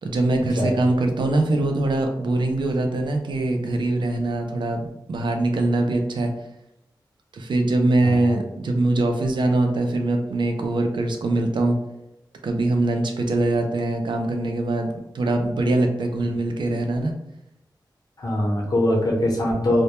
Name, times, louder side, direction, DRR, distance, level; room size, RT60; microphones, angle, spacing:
voice 1, 0.0-4.8 5.1-6.3 7.3-11.8 12.4-17.1, right 2 dB, 85° right, 4 dB, 0.4 m, -22 dB
voice 2, 8.0-8.4 18.2-19.8, left 1 dB, 55° left, -2 dB, 0.8 m, -22 dB
2.1 x 2.1 x 2.9 m, 0.87 s
wide cardioid pair, 65°, 8 cm